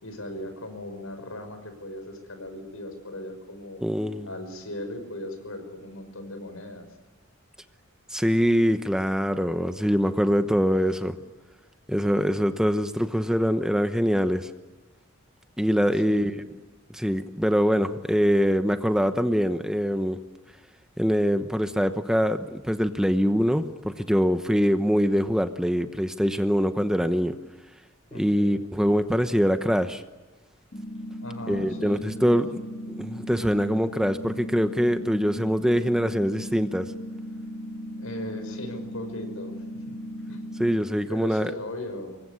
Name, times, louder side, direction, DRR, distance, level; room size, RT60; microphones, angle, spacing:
voice 1, 0.0-3.8 4.2-6.9 16.0-16.4 28.1-28.6 31.2-32.4 38.0-39.5 39.8-40.0 40.3-40.4 41.1-42.2, left 1 dB, 80° left, 7 dB, 5.9 m, -38 dB
voice 2, 3.8-4.3 8.1-11.2 11.9-14.5 15.6-16.3 16.9-20.2 21.0-27.4 28.1-30.0 31.5-32.5 32.9-36.9 40.6-41.5, equal, 5° right, 8 dB, 0.9 m, -23 dB
sound 1, 30.7-40.7, equal, 40° left, 2.9 m, -37 dB
26.0 x 22.0 x 9.7 m, 1.2 s
head